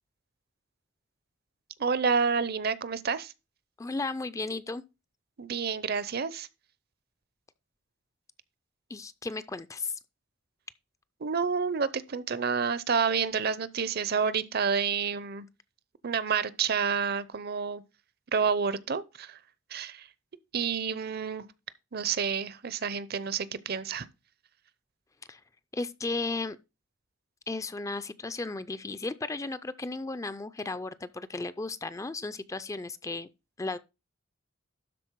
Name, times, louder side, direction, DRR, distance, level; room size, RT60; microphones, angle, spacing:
voice 1, 1.8-3.3 5.4-6.5 11.2-15.5 16.0-17.8 18.3-19.4 19.7-20.1 20.5-21.5 21.9-24.1, right 6 dB, 50° right, 0.6 m, -29 dB
voice 2, 3.8-4.8 8.9-10.0 25.3-25.4 25.7-26.6 27.5-33.3 33.6-33.8, left 3 dB, 15° left, 0.4 m, -35 dB
12.0 x 4.4 x 4.6 m
head